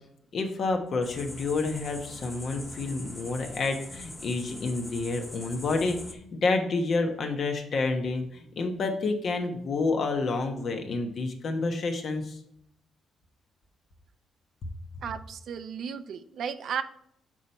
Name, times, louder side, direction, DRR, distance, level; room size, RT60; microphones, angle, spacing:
voice 1, 0.3-12.4, left 3 dB, 55° left, 4 dB, 1.1 m, -29 dB
sound 1, 1.0-6.1, left 2 dB, 15° left, 0.8 m, -43 dB
voice 2, 15.0-16.8, right 7 dB, 65° right, 11 dB, 0.5 m, -34 dB
6.1 x 4.2 x 4.5 m, 0.71 s
cardioid pair, 90°, 0 cm